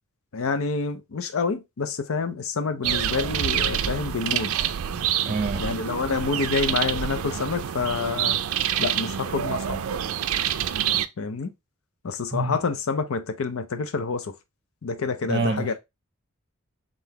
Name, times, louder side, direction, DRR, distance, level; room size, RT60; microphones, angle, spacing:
voice 1, 0.3-4.6 5.6-8.4 8.8-9.8 11.2-11.5 12.0-14.3 14.8-15.7, left 4 dB, 75° left, 0.6 m, -28 dB
sound 1, 2.8-11.1, right 10 dB, 85° right, 0.4 m, -27 dB
voice 2, 5.2-5.7 12.3-12.6 15.3-15.7, right 3 dB, 35° right, 0.6 m, -26 dB
3.9 x 3.8 x 2.8 m
head